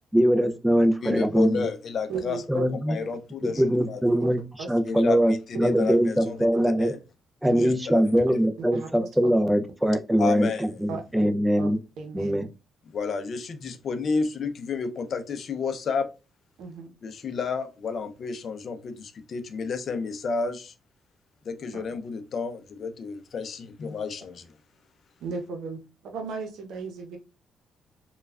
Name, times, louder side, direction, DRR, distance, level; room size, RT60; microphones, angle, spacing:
voice 1, 0.1-1.7 2.5-3.0 3.6-4.4 4.7-6.9 7.4-11.8 12.1-12.5, equal, 5° right, 0.4 m, -22 dB
voice 2, 1.0-2.4 2.9-4.3 4.8-6.4 6.8-7.0 7.6-8.0 10.2-10.8 12.9-16.1 17.0-20.7 21.4-24.5, left 5 dB, 55° left, 0.5 m, -31 dB
voice 3, 2.1-2.7 3.0-3.1 3.4-3.5 4.2-4.3 4.6-4.7 5.6-5.7 6.5-6.7 7.4-7.7 8.6-9.4 10.9-11.3 11.6-12.4 16.6-16.9 21.7-21.8 25.2-27.2, right 4 dB, 80° right, 0.7 m, -36 dB
3.2 x 2.2 x 2.3 m
cardioid pair, 90°, 0 cm